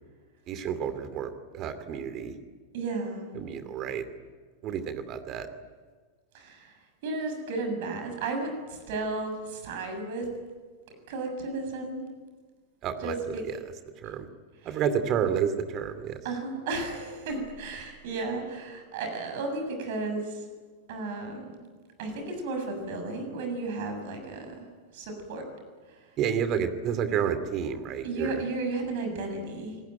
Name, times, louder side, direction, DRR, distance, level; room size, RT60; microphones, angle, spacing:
voice 1, 0.5-2.3 3.4-4.0 4.6-5.5 12.8-13.4 14.0-14.3 14.6-16.2 26.2-28.4, right 8 dB, 35° right, 11 dB, 2.5 m, -30 dB
voice 2, 2.7-3.4 6.3-6.7 7.0-10.3 11.1-12.0 13.0-13.4 14.0-14.1 14.6-14.8 16.2-20.4 20.9-21.6 22.0-24.7 24.9-25.4 25.9-26.1 28.0-29.8, right 3 dB, 50° right, 5 dB, 7.1 m, -34 dB
27.0 x 20.0 x 9.1 m, 1.5 s
figure-of-eight pair, 90°, 0 cm